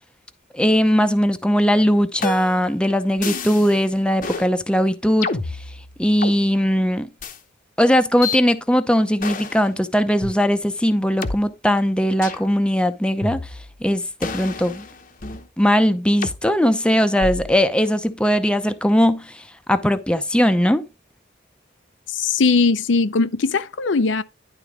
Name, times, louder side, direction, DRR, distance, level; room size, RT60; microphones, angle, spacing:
voice 1, 0.5-5.3 6.0-7.1 7.8-13.4 13.8-14.8 15.6-19.4 19.7-20.8, equal, 5° left, 0.7 m, -19 dB
sound 1, 2.2-2.7 3.2-3.8 4.2-4.5 5.2-6.4 7.2-7.4 8.2-8.4 9.2-9.6 10.2-10.3 11.2-11.4 12.2-12.5 13.2-13.8 14.2-15.5 16.2-16.4 17.2-17.6, left 3 dB, 45° left, 0.9 m, -29 dB
voice 2, 22.1-24.2, left 4 dB, 70° left, 0.6 m, -19 dB
11.0 x 3.9 x 5.0 m
head